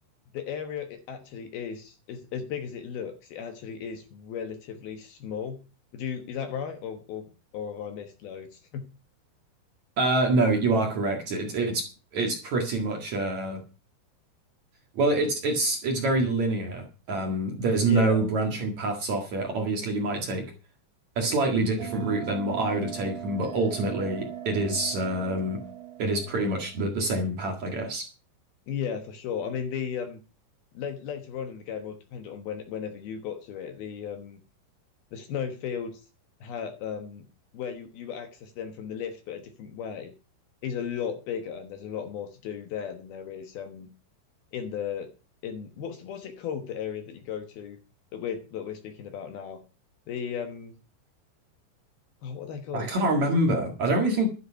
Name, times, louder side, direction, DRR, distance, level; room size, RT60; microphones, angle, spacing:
voice 1, 0.3-5.6 5.9-7.3 7.5-8.9 17.8-18.2 28.7-30.2 30.7-34.4 35.1-36.0 36.4-37.3 37.5-40.1 40.6-43.9 44.5-45.1 45.4-47.8 48.1-49.6 50.1-50.8 52.2-53.0, left 7 dB, 65° left, 7 dB, 2.8 m, -35 dB
voice 2, 10.0-11.9 12.1-13.6 15.0-20.5 21.2-25.6 26.0-28.1 52.7-54.3, right 2 dB, 50° right, 2 dB, 2.6 m, -26 dB
Bell, 21.8-26.9, right 10 dB, 80° right, 1.5 m, -39 dB
12.5 x 10.0 x 5.7 m, 0.33 s
omnidirectional pair, 5.3 m